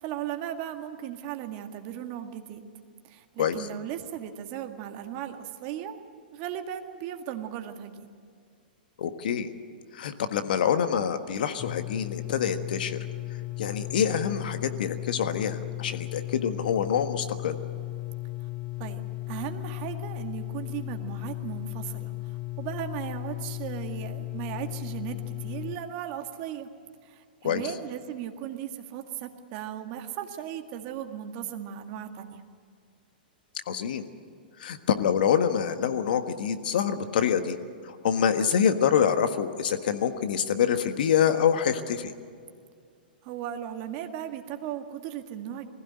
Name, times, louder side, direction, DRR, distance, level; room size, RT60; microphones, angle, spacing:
voice 1, 0.0-2.7 3.0-6.0 6.3-8.1 18.4-18.5 18.8-26.7 27.0-32.4 43.2-45.7, right 10 dB, 45° right, 6 dB, 1.9 m, -37 dB
voice 2, 9.0-9.5 9.9-13.0 13.6-17.6 27.4-27.6 33.7-34.0 34.6-37.6 37.8-42.1, left 8 dB, 65° left, 8 dB, 1.6 m, -26 dB
sound 1, 11.6-25.8, left 18 dB, 20° left, 0.7 m, -36 dB
21.0 x 16.0 x 9.9 m, 2.2 s
hypercardioid pair, 120°, 5 cm